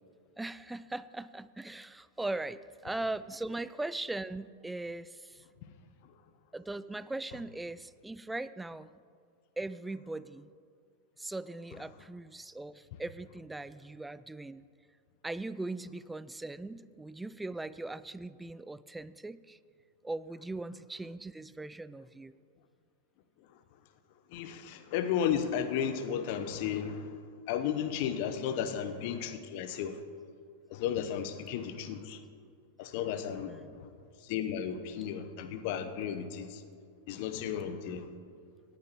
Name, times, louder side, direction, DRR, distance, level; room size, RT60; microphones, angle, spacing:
voice 1, 0.4-5.4 6.5-9.0 9.6-10.5 11.2-14.6 15.2-19.6 20.0-22.3 28.5-28.7 33.5-33.8, right 2 dB, 10° right, 17 dB, 0.3 m, -40 dB
voice 2, 24.3-27.2 27.5-30.0 30.7-32.2 32.8-33.6 34.2-36.6 37.1-38.1, left 8 dB, 55° left, 9 dB, 0.9 m, -34 dB
18.0 x 10.5 x 3.0 m, 2.2 s
figure-of-eight pair, 95°, 0 cm